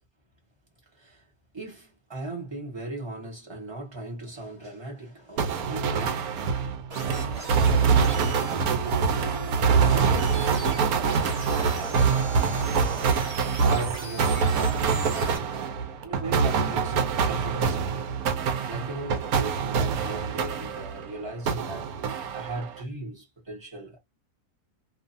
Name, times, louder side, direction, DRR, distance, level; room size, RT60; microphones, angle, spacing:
voice 1, 1.5-6.6 6.9-9.1 9.8-12.5 13.0-15.4 16.0-18.0 18.7-21.9 22.3-24.0, right 2 dB, 20° right, 1.1 m, -38 dB
sound 1, 5.4-21.1 21.5-22.8, right 5 dB, 75° right, 1.0 m, -25 dB
sound 2, 6.9-15.4, right 1 dB, 35° right, 0.6 m, -38 dB
2.5 x 2.4 x 2.6 m
omnidirectional pair, 1.7 m